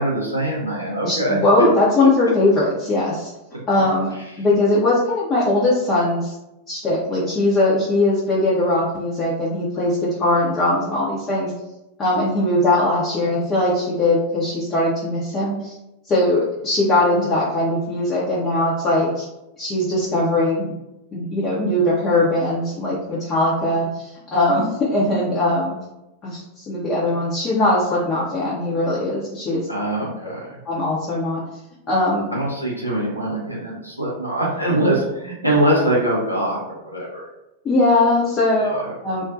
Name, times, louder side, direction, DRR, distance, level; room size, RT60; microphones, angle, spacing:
voice 1, 0.0-1.4 29.7-30.6 32.3-37.3, right 1 dB, 90° left, -4 dB, 0.5 m, -23 dB
voice 2, 1.0-3.3 3.7-4.1 4.4-6.4 6.7-11.5 12.0-15.8 16.1-19.2 19.6-20.7 21.1-25.7 26.2-29.7 30.7-31.4 31.9-32.3 37.6-39.2, left 2 dB, 25° left, -7 dB, 0.6 m, -20 dB
2.4 x 2.1 x 2.6 m, 0.93 s
figure-of-eight pair, 90°, 0 cm